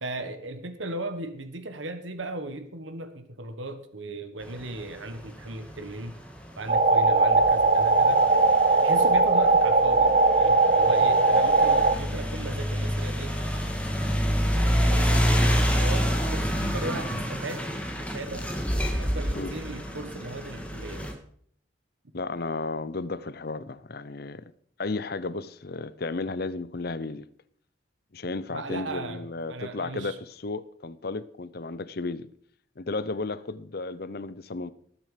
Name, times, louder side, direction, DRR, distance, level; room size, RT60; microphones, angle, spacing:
voice 1, 0.0-6.1 6.6-8.2 8.8-13.4 14.7-17.7 18.1-18.5 19.0-21.1 28.5-30.2, right 2 dB, 80° right, 1.4 m, -36 dB
sound 1, 4.4-21.1, equal, 5° left, 1.8 m, -28 dB
sound 2, 6.7-12.0, right 3 dB, 35° right, 0.7 m, -20 dB
voice 2, 22.1-24.5 24.8-27.3 28.1-32.3 32.8-34.7, left 3 dB, 55° left, 0.7 m, -33 dB
19.5 x 7.5 x 5.1 m
head